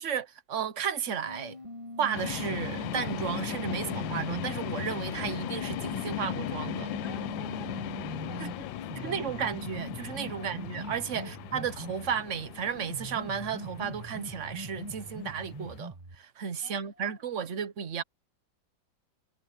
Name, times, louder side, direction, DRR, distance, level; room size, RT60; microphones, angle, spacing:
voice 1, 0.0-1.6 2.0-6.9 8.4-8.5 9.0-18.0, right 7 dB, 50° right, 1.0 m, -33 dB
sound 1, 1.3-4.6 5.3-12.2 12.8-16.2, right 1 dB, 15° right, 2.0 m, -42 dB
sound 2, 2.1-15.8, left 14 dB, 80° left, 1.4 m, -38 dB
voice 2, 7.0-9.6 10.3-10.7 11.2-11.5 16.6-17.5, left 3 dB, 55° left, 3.9 m, -52 dB
omnidirectional pair, 2.1 m